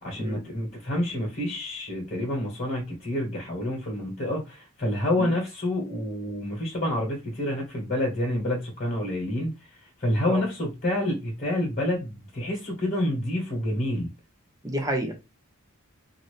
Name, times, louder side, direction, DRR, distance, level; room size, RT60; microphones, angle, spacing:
voice 1, 0.0-9.5 10.0-14.1, left 1 dB, 40° left, 1.2 m, -28 dB
voice 2, 14.6-15.2, right 1 dB, 15° right, 0.6 m, -29 dB
2.7 x 2.6 x 3.1 m
head